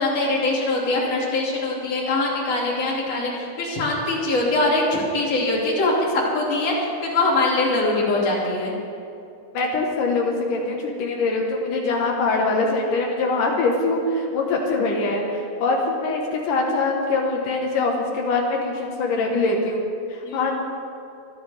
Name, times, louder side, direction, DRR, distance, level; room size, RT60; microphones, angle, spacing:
voice 1, 0.0-8.7 20.2-20.4, left 2 dB, 40° left, -4 dB, 3.0 m, -22 dB
voice 2, 9.5-20.5, left 3 dB, 75° left, 0 dB, 1.9 m, -23 dB
24.0 x 12.0 x 3.5 m, 2.6 s
omnidirectional pair, 5.9 m